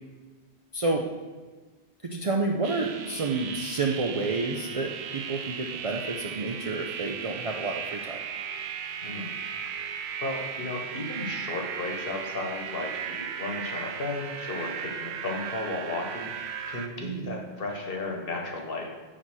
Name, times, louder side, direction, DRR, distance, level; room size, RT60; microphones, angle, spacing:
voice 1, 0.7-1.1 2.0-8.2 17.0-17.4, right 3 dB, 45° right, 1 dB, 0.4 m, -30 dB
sound 1, 2.6-16.9, right 7 dB, 75° right, 0.8 m, -36 dB
voice 2, 9.0-9.3 9.6-9.9 10.2-16.3 16.7-18.9, left 2 dB, 55° left, 0 dB, 1.3 m, -34 dB
6.4 x 4.1 x 6.0 m, 1.4 s
omnidirectional pair, 1.1 m